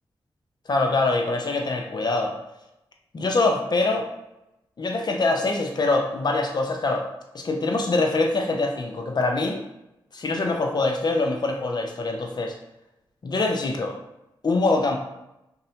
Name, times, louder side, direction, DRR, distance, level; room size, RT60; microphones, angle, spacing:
voice 1, 0.7-2.4 3.1-4.1 4.8-7.0 7.3-9.6 10.1-12.5 13.2-14.0 14.4-15.0, left 3 dB, 45° left, 2 dB, 0.5 m, -24 dB
2.7 x 2.0 x 2.8 m, 0.90 s
cardioid pair, 45°, 10 cm